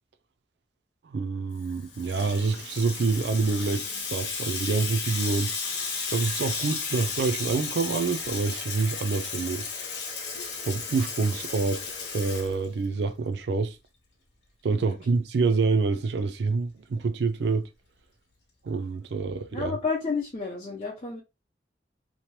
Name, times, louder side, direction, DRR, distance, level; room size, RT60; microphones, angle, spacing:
voice 1, 1.0-5.5 6.1-9.7 10.7-13.8 14.6-17.7 18.6-19.7, right 4 dB, 75° right, 0.4 m, -27 dB
Water tap faucet / Sink (filling or washing), 1.6-13.1, left 5 dB, 80° left, 0.9 m, -34 dB
voice 2, 19.5-21.2, left 4 dB, 35° left, 0.6 m, -31 dB
2.8 x 2.1 x 3.1 m
head